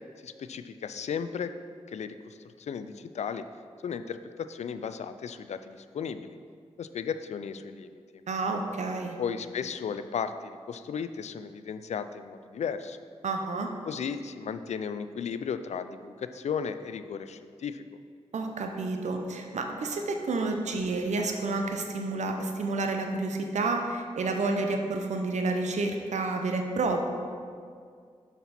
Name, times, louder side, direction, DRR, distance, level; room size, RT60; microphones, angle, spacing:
voice 1, 0.2-1.5 1.9-3.5 3.8-6.3 6.8-7.9 9.2-13.0 13.9-17.8, left 6 dB, 70° left, 11 dB, 0.4 m, -35 dB
voice 2, 8.3-9.2 13.2-13.7 18.3-27.0, right 3 dB, 75° right, 4 dB, 0.7 m, -30 dB
6.9 x 5.8 x 4.2 m, 2.2 s
supercardioid pair, 40°, 12 cm